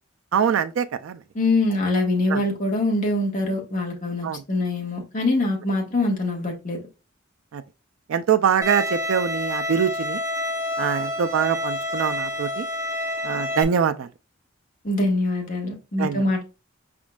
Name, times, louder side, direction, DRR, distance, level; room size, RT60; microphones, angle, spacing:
voice 1, 0.3-1.2 2.3-2.4 4.2-4.4 7.5-7.6 8.1-10.2 10.8-12.7 13.2-14.1 16.0-16.2, right 7 dB, 80° right, 0.4 m, -23 dB
voice 2, 1.3-6.8 14.8-16.4, left 2 dB, 40° left, 1.4 m, -24 dB
Bowed string instrument, 8.6-13.6, left 1 dB, 15° right, 0.8 m, -28 dB
5.1 x 3.7 x 2.3 m
head